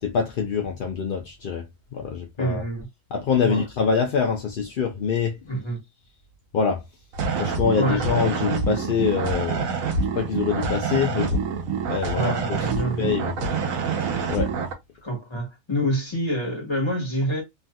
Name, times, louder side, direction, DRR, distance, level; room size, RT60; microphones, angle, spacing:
voice 1, 0.0-2.6 3.1-5.4 6.5-6.8 7.4-9.8 10.1-11.4 11.9-12.7 13.0-13.5 13.9-14.0 14.3-14.5, left 6 dB, 65° left, 0.5 m, -25 dB
voice 2, 2.4-2.9 3.4-3.6 5.4-5.8 7.8-8.2 12.1-13.1 15.0-17.4, equal, 20° left, 1.2 m, -27 dB
sound 1, 7.1-14.7, right 5 dB, 65° right, 1.2 m, -26 dB
3.3 x 2.7 x 2.2 m
omnidirectional pair, 1.6 m